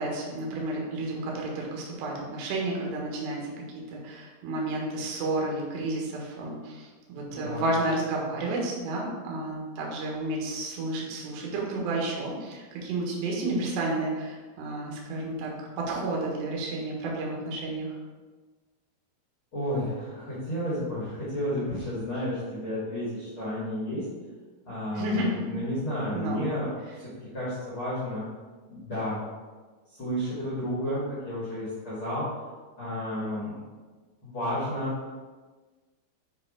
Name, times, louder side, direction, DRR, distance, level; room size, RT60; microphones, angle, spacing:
voice 1, 0.0-18.0 24.9-25.4 26.1-26.4, right 2 dB, 70° right, -2 dB, 3.2 m, -31 dB
voice 2, 7.3-7.7 19.5-24.1 24.7-26.7 27.0-27.1 27.3-28.2 28.7-29.2 30.0-32.3 32.8-33.6 34.2-34.9, left 1 dB, 45° left, -9 dB, 1.8 m, -31 dB
7.2 x 4.7 x 3.6 m, 1.3 s
omnidirectional pair, 5.3 m